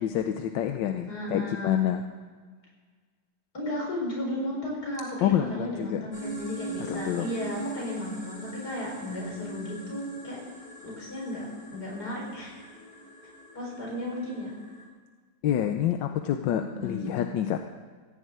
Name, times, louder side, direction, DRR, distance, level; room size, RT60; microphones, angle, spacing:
voice 1, 0.0-2.0 5.2-6.0 6.8-7.3 15.4-17.6, left 10 dB, 90° left, 6 dB, 1.4 m, -27 dB
voice 2, 1.1-1.8 3.5-10.4 10.8-12.6 13.5-14.5 16.6-17.3, left 1 dB, 60° left, -3 dB, 5.4 m, -34 dB
sound 1, 6.1-14.9, right 2 dB, 30° left, 3.2 m, -41 dB
15.5 x 7.3 x 8.8 m, 1.5 s
omnidirectional pair, 1.9 m